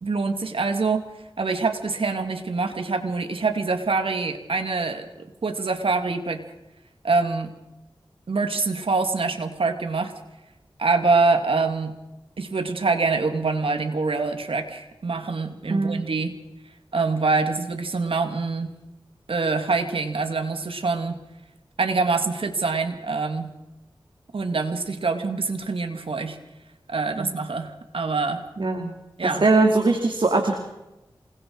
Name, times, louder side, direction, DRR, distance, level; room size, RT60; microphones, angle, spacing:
voice 1, 0.0-6.4 7.0-7.5 8.3-10.1 10.8-12.0 12.4-16.3 16.9-18.7 19.3-21.2 21.8-23.5 24.3-26.4 26.9-28.4 29.2-29.5, right 4 dB, 85° right, 6 dB, 2.6 m, -25 dB
voice 2, 15.7-16.0 27.2-27.4 28.6-28.9 29.4-30.5, right 3 dB, 65° right, 3 dB, 2.9 m, -21 dB
27.5 x 21.0 x 4.9 m, 0.97 s
wide cardioid pair, 50°, 9 cm